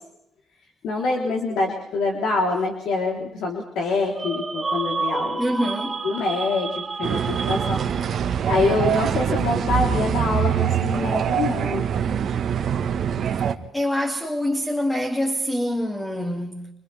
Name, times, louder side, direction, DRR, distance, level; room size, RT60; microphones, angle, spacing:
voice 1, 0.8-5.5 6.0-11.9, left 3 dB, 80° left, 3.7 m, -25 dB
sound 1, 4.2-8.3, right 4 dB, 30° right, 1.1 m, -30 dB
voice 2, 5.4-6.0 13.7-16.7, equal, 10° left, 2.7 m, -25 dB
sound 2, 7.0-13.5, right 8 dB, 60° right, 1.5 m, -24 dB
29.5 x 25.5 x 3.5 m
cardioid pair, 90°, 0 cm